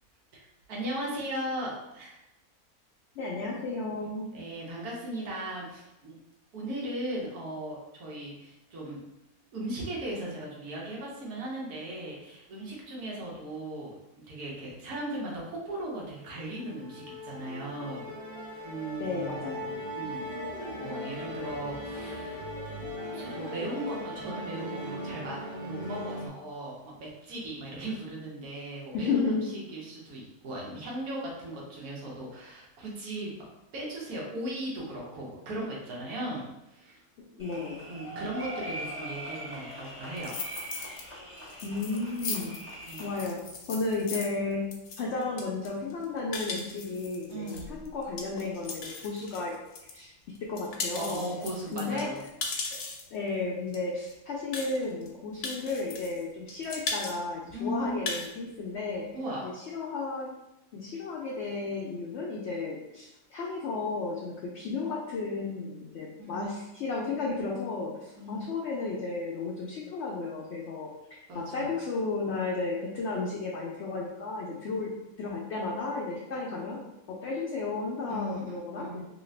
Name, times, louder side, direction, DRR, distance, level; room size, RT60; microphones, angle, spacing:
voice 1, 0.7-2.2 4.3-6.2 6.5-9.0 9.5-18.1 18.6-20.3 20.8-33.5 33.7-37.0 37.9-40.3 42.8-43.2 47.3-47.8 50.9-52.2 57.5-57.9 59.1-59.7 66.2-66.5 68.1-68.4 71.3-71.7 74.8-74.9 78.1-79.0, right 1 dB, 80° right, -3 dB, 1.4 m, -37 dB
voice 2, 3.2-4.3 19.0-19.7 28.9-29.5 37.2-37.8 41.6-42.6 43.0-43.4 43.7-44.6 45.0-49.5 49.9-50.1 50.4-51.2 51.7-52.1 52.7-52.8 53.1-59.1 59.4-60.3 60.7-74.9 75.2-76.8 77.1-79.0, left 3 dB, 65° left, -2 dB, 0.7 m, -33 dB
Musical instrument, 16.2-26.3, equal, 50° right, 0.5 m, -39 dB
sound 1, 37.4-43.3, right 1 dB, 10° right, 0.7 m, -41 dB
sound 2, 40.2-41.0 41.4-50.0 50.4-53.2 53.7-53.8 54.0-54.1 54.5-55.1 55.4-56.2 56.5-57.2 57.5-57.6 57.9-58.3, left 4 dB, 85° left, 1.2 m, -38 dB
3.1 x 2.8 x 3.2 m, 0.92 s
omnidirectional pair, 1.6 m